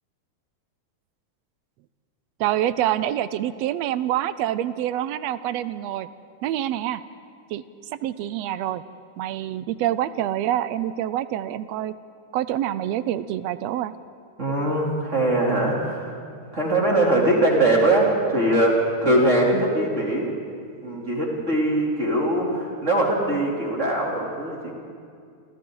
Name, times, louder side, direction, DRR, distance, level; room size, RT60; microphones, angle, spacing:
voice 1, 2.4-6.1 6.4-7.0 7.5-7.6 7.9-8.8 9.2-11.9 12.3-13.9 19.5-19.7, right 12 dB, 75° right, 14 dB, 1.6 m, -26 dB
voice 2, 14.4-16.2 16.5-20.3 20.8-24.7, right 1 dB, 25° right, -3 dB, 3.4 m, -21 dB
30.0 x 26.0 x 3.9 m, 2.3 s
omnidirectional pair, 3.4 m